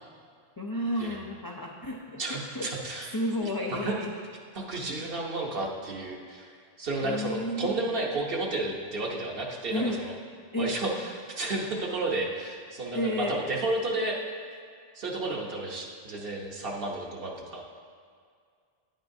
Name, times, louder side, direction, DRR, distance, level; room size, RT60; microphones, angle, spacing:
voice 1, 0.6-2.7 3.1-4.1 4.9-5.0 7.0-7.8 9.7-10.0 10.5-10.8 12.9-13.4, left 1 dB, 35° left, -1 dB, 0.3 m, -32 dB
voice 2, 2.2-4.0 4.5-6.5 6.8-10.2 10.5-14.2 14.9-17.6, right 2 dB, 55° right, -1 dB, 1.1 m, -32 dB
9.5 x 9.0 x 2.7 m, 2.1 s
omnidirectional pair, 1.2 m